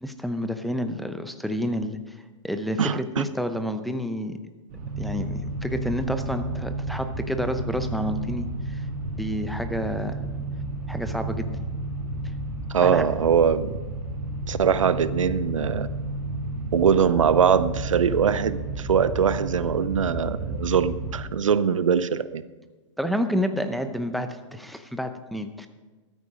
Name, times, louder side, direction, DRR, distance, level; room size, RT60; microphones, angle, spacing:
voice 1, 0.0-2.2 2.4-4.4 5.0-8.8 9.2-10.2 10.9-11.5 12.8-13.0 23.0-25.7, equal, ahead, 8 dB, 0.7 m, -29 dB
voice 2, 2.8-3.2 12.7-13.7 14.5-15.9 16.7-22.4, right 7 dB, 85° right, 16 dB, 0.6 m, -22 dB
sound 1, 4.7-21.1, right 2 dB, 45° right, 3.1 m, -32 dB
13.5 x 9.1 x 5.0 m, 1.2 s
hypercardioid pair, 120°, 16 cm